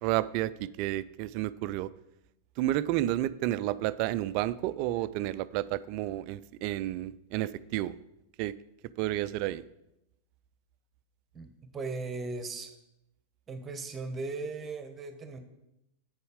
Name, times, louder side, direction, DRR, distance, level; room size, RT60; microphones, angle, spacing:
voice 1, 0.0-1.9 2.6-7.9 8.4-8.5 9.0-9.6, right 14 dB, 45° right, 17 dB, 0.3 m, -31 dB
voice 2, 11.3-12.7 13.5-15.4, right 3 dB, 20° right, 8 dB, 1.2 m, -37 dB
8.9 x 6.9 x 5.0 m, 0.87 s
figure-of-eight pair, 90°, 0 cm